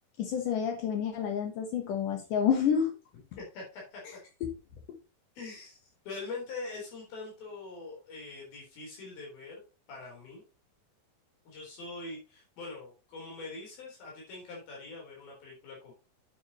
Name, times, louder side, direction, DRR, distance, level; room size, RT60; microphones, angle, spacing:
voice 1, 0.2-2.9 4.4-4.5, left 7 dB, 70° left, 4 dB, 2.6 m, -29 dB
voice 2, 3.4-4.2 5.4-9.6 9.9-10.4 11.5-15.9, left 3 dB, 85° left, -2 dB, 5.7 m, -43 dB
9.4 x 7.8 x 3.0 m, 0.31 s
omnidirectional pair, 4.1 m